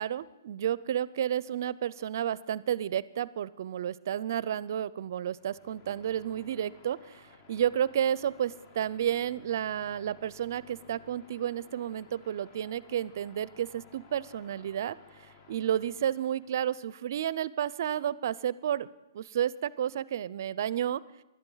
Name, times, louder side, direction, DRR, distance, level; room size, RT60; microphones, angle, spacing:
voice 1, 0.0-18.9 19.1-21.0, right 10 dB, 55° right, 20 dB, 0.4 m, -31 dB
sound 1, 5.3-16.8, left 4 dB, 30° left, 1.0 m, -57 dB
20.0 x 12.0 x 3.9 m, 1.0 s
hypercardioid pair, 145°, 2 cm